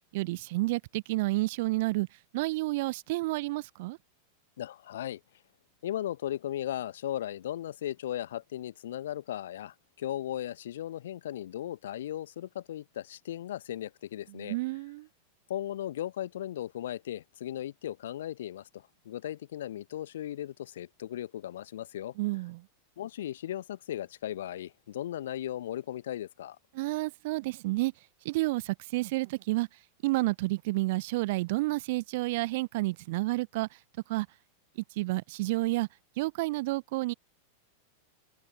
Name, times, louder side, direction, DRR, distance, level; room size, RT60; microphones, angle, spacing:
voice 1, 0.1-2.1 2.3-4.0 14.3-15.1 22.2-22.6 26.7-27.9 28.2-29.7 30.0-33.7 34.1-34.3 34.8-35.9 36.2-37.1, right 21 dB, 50° right, 0.8 m, -30 dB
voice 2, 4.6-5.2 5.8-14.6 15.5-22.1 23.0-26.6, left 12 dB, 60° left, 1.3 m, -37 dB
figure-of-eight pair, 90°, 0 cm